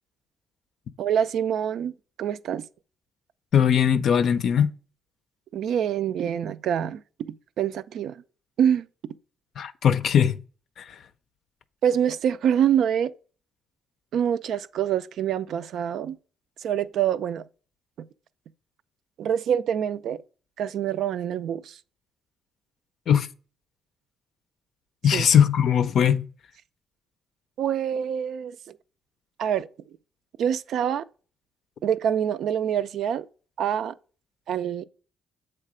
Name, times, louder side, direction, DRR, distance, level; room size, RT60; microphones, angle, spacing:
voice 1, 1.0-1.9 2.2-2.6 5.5-7.0 7.6-8.2 8.6-8.9 11.8-13.1 14.1-16.2 16.6-17.4 19.2-20.2 20.6-21.8 25.1-25.3 27.6-28.8 29.4-29.7 30.4-31.0 31.8-33.2 33.6-33.9 34.5-34.8, right 9 dB, 75° right, 0.4 m, -25 dB
voice 2, 3.5-4.7 9.6-10.4 10.8-11.0 23.1-23.3 25.0-26.3, left 8 dB, 65° left, 0.4 m, -20 dB
7.4 x 3.3 x 4.9 m
cardioid pair, 90°, 0 cm